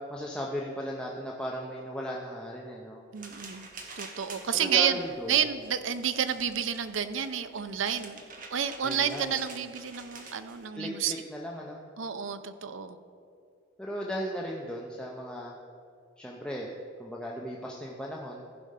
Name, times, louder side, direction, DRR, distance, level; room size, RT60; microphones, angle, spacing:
voice 1, 0.1-3.0 4.5-5.3 8.8-9.4 10.7-11.8 13.8-15.5 16.2-16.7 17.0-18.4, equal, 5° left, -2 dB, 0.6 m, -36 dB
voice 2, 3.1-3.7 4.0-5.0 5.3-8.2 8.5-11.1 12.0-13.0, right 8 dB, 70° right, 11 dB, 0.6 m, -30 dB
sound 1, 3.2-10.7, right 4 dB, 45° right, 1.1 m, -48 dB
15.0 x 5.1 x 5.4 m, 2.5 s
head